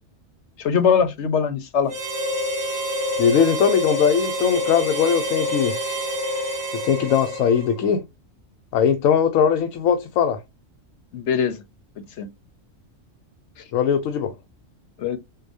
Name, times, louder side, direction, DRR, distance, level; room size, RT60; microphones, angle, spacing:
voice 1, 0.6-1.9 11.1-11.6 12.2-12.3 13.6-13.7 15.0-15.2, left 7 dB, 65° left, 1.0 m, -21 dB
Harmonica, 1.9-7.8, equal, 35° right, 2.4 m, -27 dB
voice 2, 3.2-5.8 6.8-8.0 8.7-10.4 13.7-14.3, left 7 dB, 90° left, 1.0 m, -20 dB
6.5 x 2.3 x 2.6 m
omnidirectional pair, 1.3 m